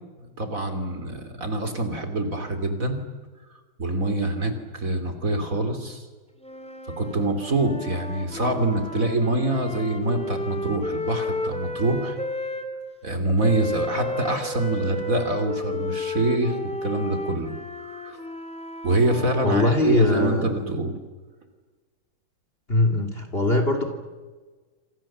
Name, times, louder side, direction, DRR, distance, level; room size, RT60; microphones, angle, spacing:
voice 1, 0.2-3.0 3.8-6.1 7.0-12.2 13.0-18.2 18.8-20.9, right 2 dB, 40° right, 7 dB, 3.2 m, -25 dB
sound 1, 6.4-12.7 13.4-20.5, left 1 dB, 5° left, 2.6 m, -33 dB
voice 2, 19.4-20.5 22.7-23.8, left 2 dB, 25° left, 5 dB, 2.8 m, -21 dB
28.0 x 27.0 x 7.4 m, 1.4 s
omnidirectional pair, 2.3 m